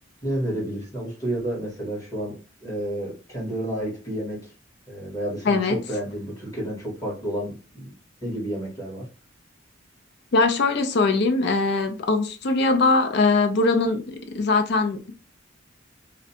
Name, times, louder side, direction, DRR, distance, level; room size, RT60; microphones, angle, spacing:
voice 1, 0.2-2.3 2.6-4.5 4.9-7.9 8.2-9.1, right 1 dB, 20° left, 1.3 m, -30 dB
voice 2, 5.4-5.8 10.3-15.1, left 3 dB, 60° left, 0.4 m, -21 dB
2.5 x 2.1 x 2.7 m
head